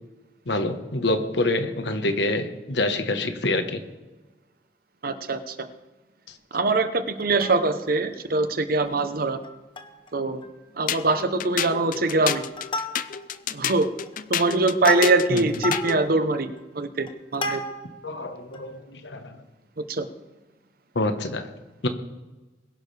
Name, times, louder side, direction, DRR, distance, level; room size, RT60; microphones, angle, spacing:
voice 1, 0.5-3.8 15.3-15.4 17.5-17.6 18.0-19.4 20.9-21.5 21.8-21.9, left 2 dB, 75° left, 7 dB, 1.3 m, -26 dB
voice 2, 5.0-5.7 6.5-9.4 10.1-10.4 10.7-12.4 13.5-13.9 14.3-17.6 19.8-20.1, right 3 dB, 55° right, 10 dB, 0.9 m, -23 dB
Plucked string instrument, 7.2-8.0 8.4-8.5 8.8-9.0 9.4-10.1 10.4-10.5 10.9-11.2 11.6-12.0 12.3-13.4 13.9-18.0 18.5-18.6, left 1 dB, 30° left, 1.1 m, -33 dB
sound 1, 10.9-16.0, left 8 dB, 50° left, 0.5 m, -30 dB
22.0 x 11.0 x 3.4 m, 1.2 s
head